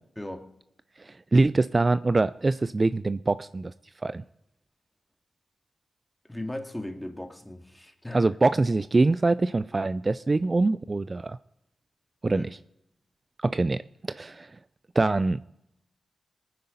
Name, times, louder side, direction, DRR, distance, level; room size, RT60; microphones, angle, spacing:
voice 1, 0.2-0.5 6.3-8.3 12.3-12.5, left 1 dB, 10° left, 2.1 m, -37 dB
voice 2, 1.3-3.7 4.0-4.2 8.1-11.4 12.2-12.5 13.4-13.8 14.1-14.5 15.0-15.4, right 3 dB, 40° right, 0.4 m, -24 dB
19.0 x 9.6 x 4.0 m
supercardioid pair, 40°, 0 cm